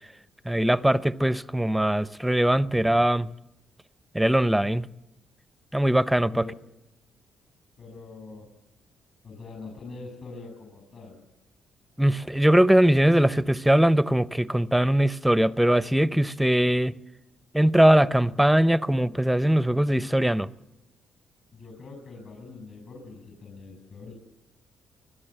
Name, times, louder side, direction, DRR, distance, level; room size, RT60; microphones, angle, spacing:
voice 1, 0.5-3.3 4.1-4.9 5.7-6.5 12.0-16.9 17.5-20.5, right 1 dB, 5° right, 0.6 m, -21 dB
voice 2, 6.3-6.7 7.8-8.5 9.2-11.2 21.5-24.1, left 3 dB, 60° left, 6.7 m, -43 dB
25.0 x 16.0 x 7.6 m
cardioid pair, 90°, 0 cm